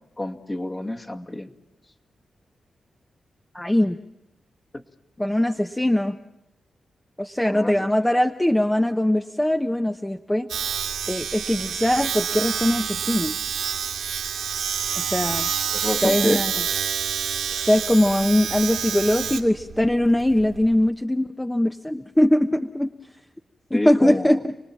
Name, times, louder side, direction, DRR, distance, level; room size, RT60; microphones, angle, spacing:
voice 1, 0.2-1.5 4.7-4.8 7.5-7.9 15.7-16.4 23.7-24.3, left 1 dB, 30° left, 2 dB, 2.3 m, -28 dB
voice 2, 3.5-4.0 5.2-6.2 7.2-10.5 11.1-13.3 15.0-15.5 16.0-16.5 17.5-22.9 23.7-24.5, left 1 dB, 10° left, 7 dB, 1.0 m, -21 dB
Domestic sounds home sounds, 10.5-20.9, right 8 dB, 85° right, 2.1 m, -28 dB
30.0 x 19.5 x 7.4 m, 0.96 s
supercardioid pair, 45°, 0 cm